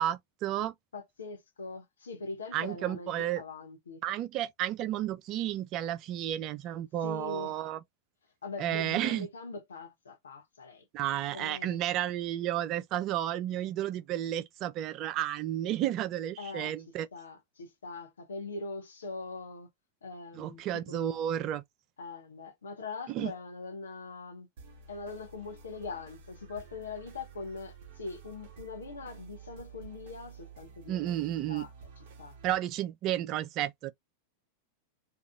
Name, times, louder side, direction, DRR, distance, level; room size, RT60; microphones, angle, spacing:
voice 1, 0.0-0.7 2.5-3.4 4.0-7.8 8.6-9.3 10.9-17.1 20.4-21.6 23.1-23.3 30.9-31.7 32.4-33.9, right 12 dB, 35° right, 0.4 m, -32 dB
voice 2, 0.9-4.0 7.0-7.6 8.4-10.8 11.3-11.8 16.4-16.7 17.1-19.7 20.0-21.2 22.0-24.5 24.9-31.2 31.5-32.4, left 3 dB, 70° left, 0.8 m, -42 dB
sound 1, 24.6-32.6, right 6 dB, 55° right, 1.0 m, -51 dB
2.8 x 2.4 x 2.2 m
figure-of-eight pair, 90°, 0 cm